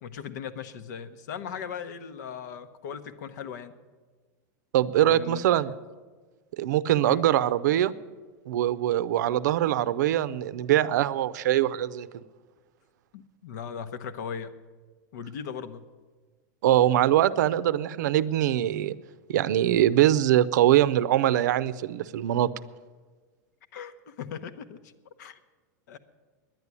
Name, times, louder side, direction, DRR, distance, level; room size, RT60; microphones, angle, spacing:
voice 1, 0.0-3.7 5.0-5.6 7.0-7.2 13.1-14.5 15.1-15.8 23.7-24.9 25.2-25.4 25.9-26.0, left 7 dB, 70° left, 11 dB, 0.9 m, -38 dB
voice 2, 4.7-5.8 6.6-7.9 8.5-12.1 16.6-18.9 19.3-22.5, right 12 dB, 75° right, 16 dB, 0.6 m, -23 dB
10.5 x 9.6 x 9.6 m, 1.4 s
supercardioid pair, 160°, 10 cm